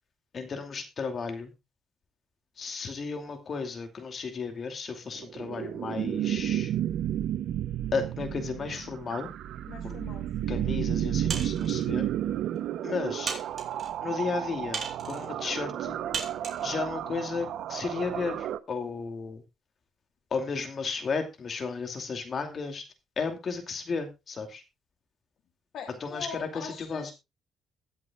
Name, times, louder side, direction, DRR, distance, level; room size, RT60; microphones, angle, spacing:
voice 1, 0.3-1.5 2.6-6.7 7.9-9.3 9.8-10.0 10.5-12.1 12.8-13.4 14.0-16.0 16.6-19.4 20.3-22.9 23.2-24.6 26.0-27.1, left 4 dB, 50° left, 6 dB, 2.5 m, -34 dB
sound 1, 5.2-18.6, right 11 dB, 80° right, 0.7 m, -32 dB
voice 2, 9.7-10.5 25.7-27.1, left 6 dB, 75° left, 3 dB, 2.6 m, -42 dB
sound 2, 11.3-11.8 12.6-12.7 13.3-13.9 14.7-15.3 16.1-16.7, right 5 dB, 45° right, 3.7 m, -35 dB
22.0 x 7.4 x 2.3 m, 0.24 s
cardioid pair, 90°, 0 cm